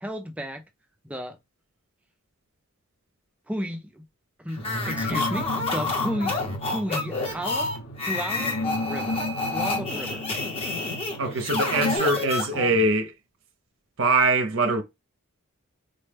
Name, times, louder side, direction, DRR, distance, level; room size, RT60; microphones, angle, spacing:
voice 1, 0.0-0.6 1.0-1.4 3.5-4.0 4.4-6.4 6.7-7.7 8.0-8.5 8.8-9.2 9.5-10.2, equal, 5° right, 0.4 m, -33 dB
sound 1, 4.6-12.0, left 1 dB, 80° left, 1.2 m, -34 dB
sound 2, 4.6-12.9, left 3 dB, 25° left, 0.8 m, -29 dB
voice 2, 11.2-13.1 14.0-14.8, right 2 dB, 60° right, 0.6 m, -23 dB
4.1 x 2.1 x 3.3 m
head